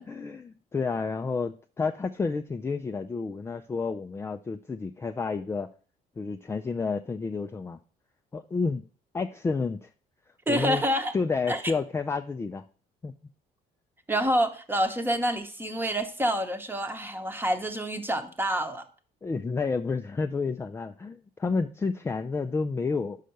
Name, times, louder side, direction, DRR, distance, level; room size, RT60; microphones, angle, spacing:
voice 1, 0.0-5.7 6.2-7.8 8.3-8.8 9.1-9.9 10.5-10.8 11.1-12.7 13.0-13.1 19.2-23.2, left 4 dB, 15° left, 6 dB, 0.3 m, -30 dB
voice 2, 10.5-11.1 11.5-11.6 14.1-18.9, equal, 10° right, 7 dB, 0.9 m, -27 dB
5.6 x 5.1 x 6.5 m, 0.41 s
cardioid pair, 110°, 17 cm